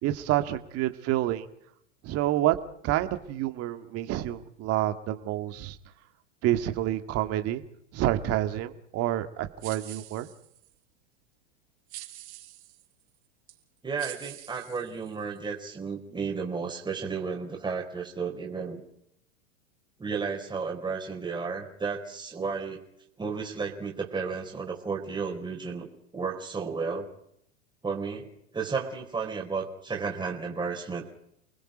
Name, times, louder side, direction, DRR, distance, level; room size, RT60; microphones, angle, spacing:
voice 1, 0.0-1.5 2.0-2.6 2.8-5.8 6.4-7.6 7.9-10.3, right 13 dB, 40° right, 8 dB, 1.9 m, -28 dB
sound 1, 9.6-10.7 11.9-12.9 13.5-13.6 14.0-15.4, right 16 dB, 65° right, 5.4 m, -45 dB
voice 2, 13.8-18.8 20.0-22.8 23.2-25.9 26.1-27.1 27.8-28.3 28.5-31.2, right 5 dB, 10° right, 0 dB, 4.1 m, -33 dB
29.5 x 20.5 x 5.1 m, 0.73 s
hypercardioid pair, 110°, 36 cm